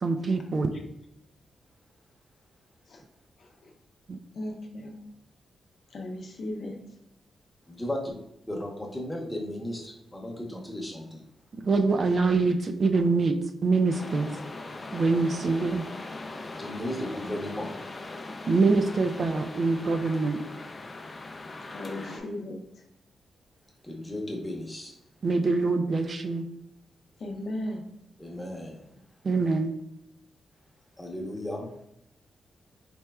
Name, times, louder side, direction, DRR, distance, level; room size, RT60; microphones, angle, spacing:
voice 1, 0.0-0.7 4.1-4.2 11.6-14.4 14.9-15.8 18.5-20.4 25.2-26.5 29.2-29.7, right 3 dB, 45° right, 6 dB, 0.3 m, -24 dB
voice 2, 3.4-3.7 4.3-5.0 5.9-6.8 21.7-22.6 27.2-27.9, left 1 dB, 60° left, 1 dB, 0.7 m, -36 dB
voice 3, 7.7-8.1 8.5-11.2 16.6-17.7 23.8-24.9 28.2-29.0 31.0-31.7, left 1 dB, 10° left, -2 dB, 0.9 m, -35 dB
sound 1, 13.9-22.2, left 2 dB, 30° left, 0.4 m, -40 dB
4.2 x 3.3 x 2.3 m, 0.80 s
cardioid pair, 95°, 0 cm